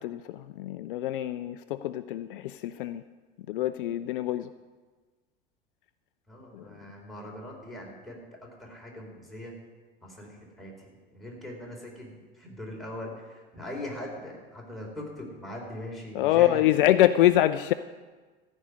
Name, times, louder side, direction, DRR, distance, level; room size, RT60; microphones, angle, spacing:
voice 1, 0.0-3.0 3.5-4.5 6.5-6.6 16.1-17.7, left 13 dB, 65° left, 13 dB, 0.5 m, -25 dB
voice 2, 6.3-8.2 8.6-9.5 10.0-10.9 11.1-16.7, left 1 dB, ahead, -3 dB, 4.3 m, -41 dB
14.5 x 5.3 x 9.6 m, 1.4 s
figure-of-eight pair, 75°, 29 cm